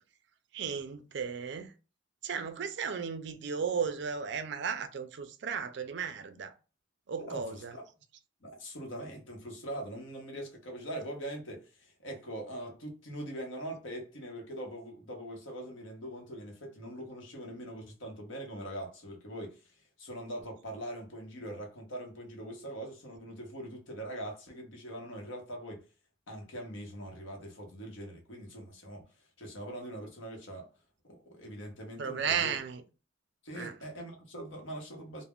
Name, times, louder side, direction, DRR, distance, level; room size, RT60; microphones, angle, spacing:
voice 1, 0.5-1.7 2.2-6.5 7.1-7.7 32.0-32.8 33.6-33.7, right 6 dB, 55° right, 0.3 m, -34 dB
voice 2, 7.2-7.8 8.4-25.9 26.3-30.7 31.0-32.5 33.4-35.2, right 1 dB, 70° left, 0.8 m, -42 dB
2.3 x 2.0 x 3.5 m
head